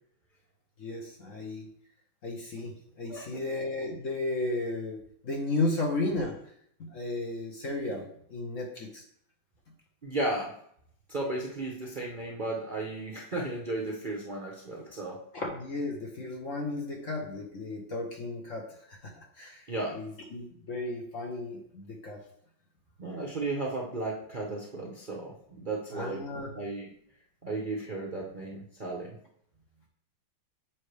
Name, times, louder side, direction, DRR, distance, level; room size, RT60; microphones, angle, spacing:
voice 1, 0.8-1.7 2.2-2.7 3.0-5.0 5.2-6.3 6.9-9.0 15.3-18.6 18.9-19.6 19.9-22.2 25.9-26.5, left 2 dB, 50° left, 1 dB, 1.1 m, -34 dB
voice 2, 3.1-3.4 10.0-10.5 11.1-15.2 19.7-20.0 23.0-26.2 26.5-26.9 27.4-29.2, right 2 dB, 40° right, -2 dB, 0.7 m, -34 dB
7.4 x 5.1 x 3.3 m, 0.67 s
omnidirectional pair, 2.1 m